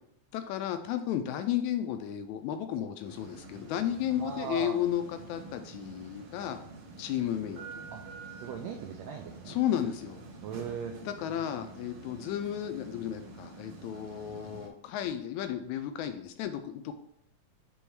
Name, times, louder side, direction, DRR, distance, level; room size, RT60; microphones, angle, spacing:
voice 1, 0.3-6.6 7.0-7.9 9.4-10.2 11.0-16.9, left 10 dB, 80° left, 8 dB, 1.7 m, -33 dB
sound 1, 3.1-14.7, right 3 dB, 60° right, 1.8 m, -47 dB
voice 2, 4.2-4.7 7.9-8.0 8.4-9.6 10.4-10.9, right 6 dB, 85° right, 2 dB, 1.5 m, -38 dB
6.9 x 3.6 x 4.6 m, 0.74 s
omnidirectional pair, 3.7 m